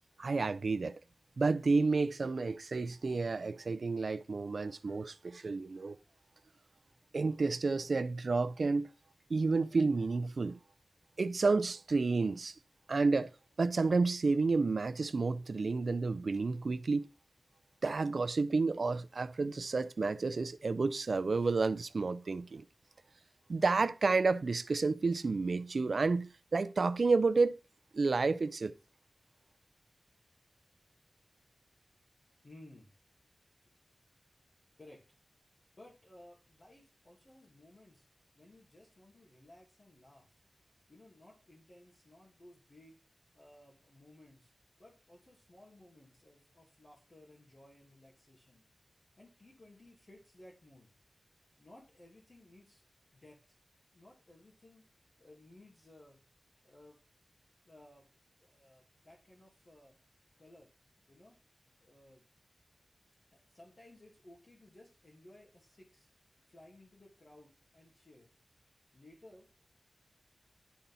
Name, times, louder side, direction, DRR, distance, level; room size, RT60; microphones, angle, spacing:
voice 1, 0.2-1.0 1.4-6.0 7.1-8.9 9.3-10.6 11.2-12.5 12.9-13.3 13.6-17.1 17.8-22.7 23.5-27.6 27.9-28.7, right 3 dB, 70° right, 0.5 m, -30 dB
voice 2, 32.4-32.9 34.8-35.0 35.7-38.0 38.4-40.4 40.9-43.0 43.3-44.5 44.8-48.6 49.2-50.9 51.6-52.8 53.1-53.5 53.9-54.8 55.2-56.2 56.6-57.0 57.6-58.1 58.4-59.9 60.4-60.7 61.1-61.4 61.8-62.2 63.3-66.1 66.5-68.3 68.9-69.5, left 1 dB, 50° left, 2.3 m, -58 dB
10.5 x 4.1 x 5.5 m
wide cardioid pair, 65°, 0 cm